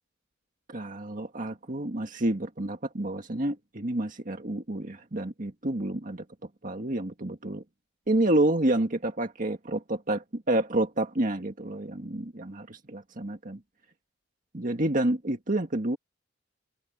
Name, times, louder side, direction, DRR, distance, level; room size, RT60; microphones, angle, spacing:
voice 1, 0.7-6.2 6.6-7.6 8.1-13.6 14.5-16.0, right 1 dB, 45° right, 1.8 m, -29 dB
head